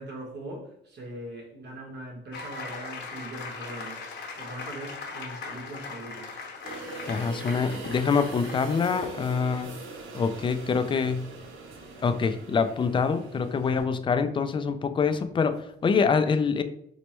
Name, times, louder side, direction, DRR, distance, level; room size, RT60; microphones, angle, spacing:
voice 1, 0.0-4.1 4.4-6.3, right 1 dB, 60° right, 1.3 m, -41 dB
sound 1, 2.3-9.4, left 4 dB, 60° left, 0.9 m, -40 dB
sound 2, 6.6-13.9, right 3 dB, 80° right, 0.6 m, -41 dB
voice 2, 7.1-9.7 10.1-11.2 12.0-16.6, left 5 dB, 25° left, 0.3 m, -25 dB
4.3 x 2.1 x 3.0 m
cardioid pair, 90°, 20 cm